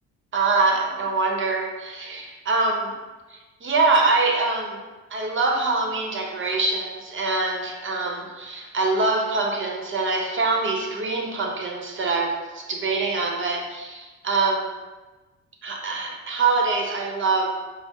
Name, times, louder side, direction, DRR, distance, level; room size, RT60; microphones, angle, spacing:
voice 1, 0.3-2.9 3.3-4.8 5.1-14.7 15.6-17.6, right 3 dB, 40° right, 1 dB, 0.8 m, -24 dB
4.9 x 2.0 x 3.6 m, 1.2 s
cardioid pair, 90°, 30 cm